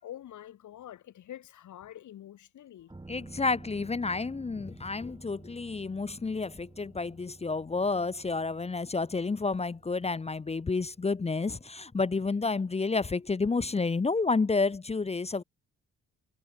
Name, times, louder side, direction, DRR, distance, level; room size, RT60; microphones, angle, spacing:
voice 1, 0.0-2.9 15.3-15.4, left 12 dB, 75° left, 6.4 m, -46 dB
sound 1, 2.9-14.5 14.8-14.9, right 2 dB, 15° right, 5.0 m, -52 dB
voice 2, 3.1-15.4, left 4 dB, 20° left, 0.9 m, -30 dB
cardioid pair, 90°, 30 cm